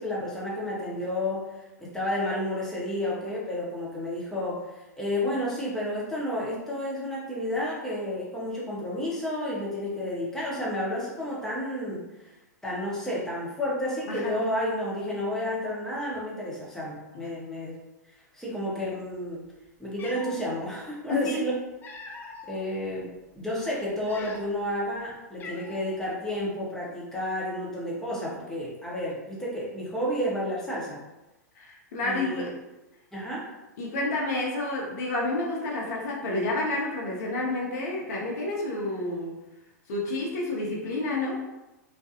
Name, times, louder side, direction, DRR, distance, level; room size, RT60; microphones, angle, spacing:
voice 1, 0.0-1.5 1.8-12.3 12.6-17.8 18.3-19.5 19.8-21.5 22.5-31.0 32.0-32.5 33.1-33.5, left 1 dB, 5° left, -6 dB, 0.8 m, -31 dB
voice 2, 14.1-14.4 21.1-21.5 31.6-32.5 33.8-39.3 39.9-41.3, left 2 dB, 60° left, -3 dB, 0.7 m, -30 dB
Cat, 19.4-19.5 19.9-20.5 21.4-22.6 23.2-23.3 23.9-24.7 25.0-25.1 25.4-26.0, left 3 dB, 20° left, 0.3 m, -43 dB
2.4 x 2.2 x 2.7 m, 1.0 s
hypercardioid pair, 105°, 10 cm